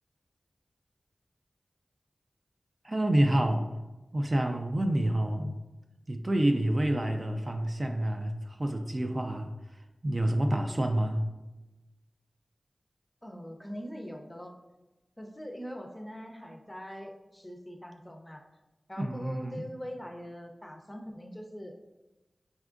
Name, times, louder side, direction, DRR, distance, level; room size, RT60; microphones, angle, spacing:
voice 1, 2.8-3.7 4.1-5.5 6.1-9.5 10.0-11.2 19.0-19.7, right 1 dB, 40° right, 4 dB, 0.4 m, -28 dB
voice 2, 13.2-14.6 15.2-18.4 18.9-21.9, equal, 15° left, 2 dB, 0.5 m, -42 dB
5.1 x 3.5 x 2.4 m, 1.1 s
wide cardioid pair, 75°, 0 cm